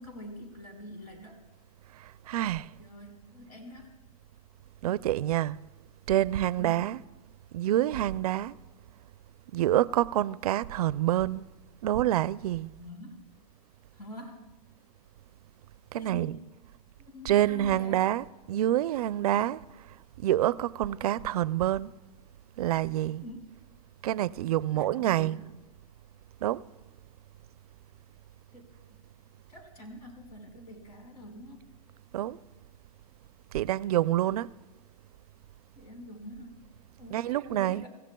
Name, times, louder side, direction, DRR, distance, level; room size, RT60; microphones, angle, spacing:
voice 1, 0.0-1.4 2.8-3.9 6.6-6.9 12.8-13.3 13.9-14.5 16.0-16.4 17.0-18.1 21.2-21.3 23.2-23.4 24.7-25.5 28.5-28.7 29.5-31.7 35.7-36.6 37.0-37.9, left 1 dB, 85° left, 4.9 m, -46 dB
voice 2, 1.9-2.7 4.8-5.6 6.1-7.0 7.5-8.6 9.5-11.5 11.8-12.7 15.9-16.4 17.2-19.6 20.2-21.9 22.6-23.2 24.0-25.4 26.4-26.6 32.1-32.4 33.5-34.5 37.1-37.9, right 13 dB, 75° right, 0.5 m, -27 dB
26.5 x 15.5 x 2.3 m
hypercardioid pair, 135°, 20 cm